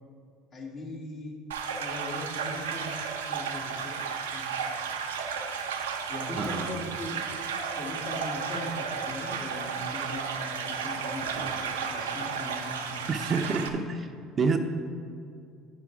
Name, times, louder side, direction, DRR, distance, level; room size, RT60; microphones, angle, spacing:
voice 1, 0.5-1.4 1.8-4.0 4.3-4.5 6.1-7.3 7.8-13.4, left 1 dB, 45° left, -2 dB, 2.2 m, -39 dB
sound 1, 1.5-13.7, right 6 dB, 90° right, 0.7 m, -33 dB
voice 2, 13.1-14.1 14.4-14.6, right 4 dB, 40° right, 6 dB, 0.7 m, -27 dB
9.2 x 6.1 x 4.7 m, 2.4 s
hypercardioid pair, 75°, 0 cm